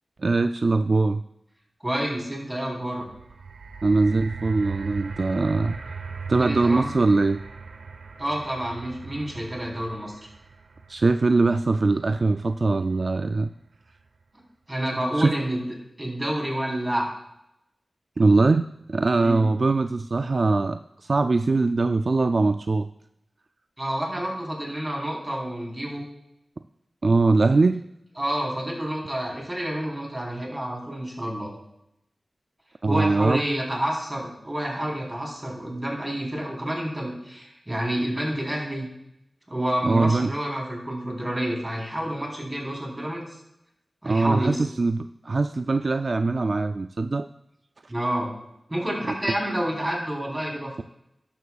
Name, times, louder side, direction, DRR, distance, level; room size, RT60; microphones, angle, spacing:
voice 1, 0.2-1.2 3.8-5.8 6.3-7.4 10.9-13.5 15.2-15.3 18.2-18.6 18.9-22.9 27.0-27.8 32.8-33.4 39.8-40.3 44.1-47.3, right 3 dB, 55° right, 9 dB, 0.3 m, -22 dB
voice 2, 1.8-3.1 6.3-6.9 8.2-10.1 14.7-17.1 19.1-19.5 23.8-26.1 28.2-31.5 32.8-38.9 39.5-43.3 44.0-44.6 47.9-48.3 48.7-50.8, right 1 dB, 20° right, -1 dB, 4.0 m, -29 dB
sound 1, 3.0-13.3 14.0-14.1, right 5 dB, 90° right, 0.9 m, -39 dB
13.0 x 11.0 x 2.4 m, 0.82 s
wide cardioid pair, 60°, 0 cm